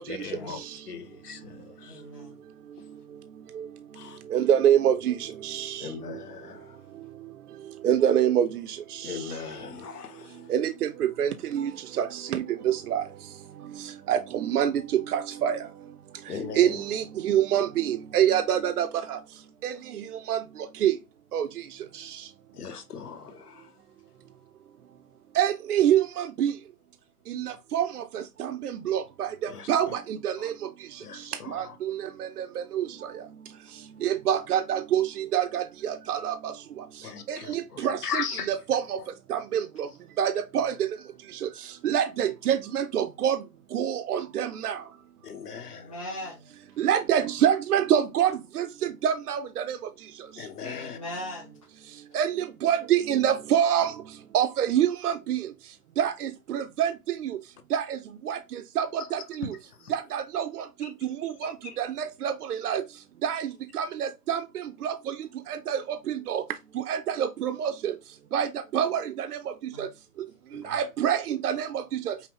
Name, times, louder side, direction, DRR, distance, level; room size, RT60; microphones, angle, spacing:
voice 1, 0.0-2.0 3.9-4.2 5.8-6.8 9.0-10.5 16.3-16.8 22.5-23.7 29.5-29.9 30.4-30.5 31.0-31.8 37.0-38.5 45.2-46.0 50.4-51.0 59.0-59.1 59.7-59.9 60.8-60.9 61.4-61.8 62.7-62.8 70.5-70.8, left 6 dB, 80° left, 1.0 m, -39 dB
voice 2, 1.9-2.4 21.8-21.9 45.7-46.5 50.6-51.6 69.7-69.9, left 1 dB, 20° left, 0.6 m, -39 dB
voice 3, 4.3-5.9 7.8-9.2 10.5-11.7 12.0-13.0 14.1-15.6 16.5-19.2 19.6-19.8 20.3-20.4 20.8-20.9 21.3-21.5 22.0-22.2 25.4-26.5 27.3-30.5 31.5-32.9 34.0-36.5 37.3-39.0 39.3-39.9 40.2-40.9 41.4-41.5 41.8-43.4 43.7-44.8 46.8-49.8 52.1-53.9 54.3-55.4 56.0-56.9 57.2-57.4 57.7-58.0 58.3-58.4 58.8-59.5 59.9-60.6 61.0-61.5 61.8-62.8 63.2-65.2 65.5-66.4 66.8-67.9 68.3-68.5 68.7-69.4 69.8-69.9 70.6-72.1, right 9 dB, 80° right, 0.5 m, -26 dB
5.6 x 2.0 x 2.9 m
hypercardioid pair, 170°, 45 cm